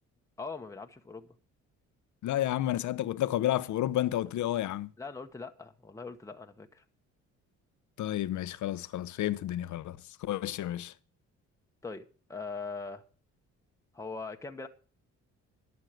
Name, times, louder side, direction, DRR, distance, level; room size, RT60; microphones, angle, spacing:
voice 1, 0.4-1.3 5.0-6.8 11.8-13.0 13.9-14.7, left 4 dB, 10° left, 1.1 m, -41 dB
voice 2, 2.2-4.9 8.0-10.9, left 13 dB, 75° left, 0.8 m, -31 dB
12.0 x 6.5 x 7.7 m
cardioid pair, 90°, 30 cm